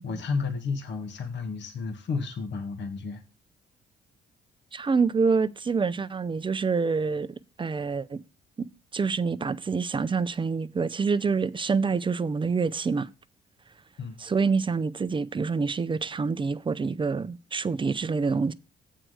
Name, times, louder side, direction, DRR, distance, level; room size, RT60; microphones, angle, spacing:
voice 1, 0.0-3.2 14.0-14.2, left 4 dB, 65° left, 1.4 m, -32 dB
voice 2, 4.7-7.3 7.6-8.2 8.6-8.7 8.9-13.1 14.2-18.5, right 5 dB, 25° right, 0.5 m, -26 dB
7.7 x 4.6 x 6.3 m
cardioid pair, 90°, 20 cm